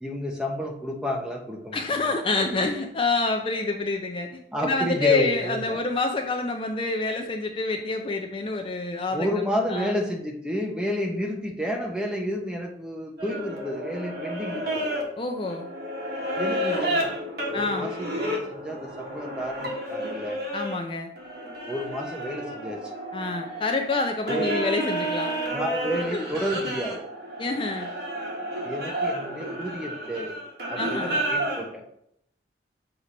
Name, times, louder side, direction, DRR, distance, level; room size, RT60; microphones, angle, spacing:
voice 1, 0.0-2.2 4.5-5.8 9.1-15.0 16.3-17.2 17.5-20.4 21.7-22.9 24.3-24.6 25.5-27.0 28.6-30.3 30.7-31.8, equal, 5° right, 0 dB, 0.8 m, -31 dB
voice 2, 1.7-9.3 9.7-9.9 15.2-15.7 17.5-17.9 20.5-21.1 23.1-25.3 26.1-26.2 27.4-27.9 30.8-31.2, left 3 dB, 30° left, 3 dB, 0.4 m, -27 dB
sound 1, 13.2-20.8 21.2-31.7, right 1 dB, 65° right, 1.5 m, -31 dB
6.6 x 2.9 x 5.1 m, 0.74 s
head